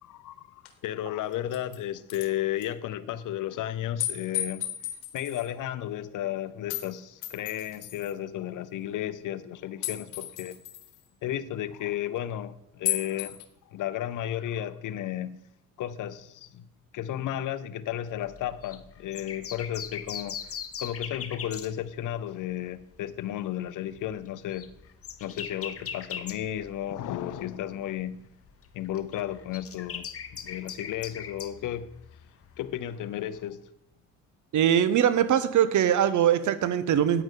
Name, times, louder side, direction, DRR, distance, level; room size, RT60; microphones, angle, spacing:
voice 1, 0.0-4.7 5.1-10.6 11.2-13.4 13.7-15.4 15.8-16.7 16.9-20.4 20.8-24.7 25.2-28.2 28.7-30.1 30.4-31.9 32.6-33.6, left 11 dB, 65° left, 0.7 m, -33 dB
sound 1, 0.7-0.8 1.3-1.8 2.1-2.3 2.6-2.7 4.0-5.5 6.7-6.9 7.2-8.1 9.8-11.0 12.9-13.5, left 13 dB, 90° left, 1.2 m, -33 dB
sound 2, 18.1-22.4 22.7-23.0 23.5-27.8 28.0-33.4, left 7 dB, 40° left, 1.0 m, -41 dB
voice 2, 34.5-37.2, right 9 dB, 60° right, 1.0 m, -22 dB
9.5 x 8.9 x 3.8 m
supercardioid pair, 75°, 34 cm